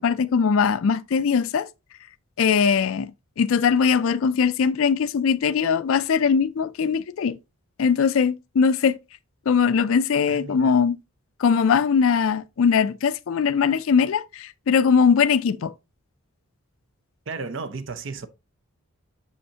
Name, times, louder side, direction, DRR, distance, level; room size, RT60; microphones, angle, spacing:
voice 1, 0.0-1.7 2.4-7.4 7.8-9.0 9.5-11.0 11.4-15.7, left 6 dB, 70° left, 0.4 m, -21 dB
voice 2, 10.3-10.7 17.3-18.3, right 4 dB, 55° right, 0.6 m, -34 dB
7.0 x 5.5 x 2.8 m
head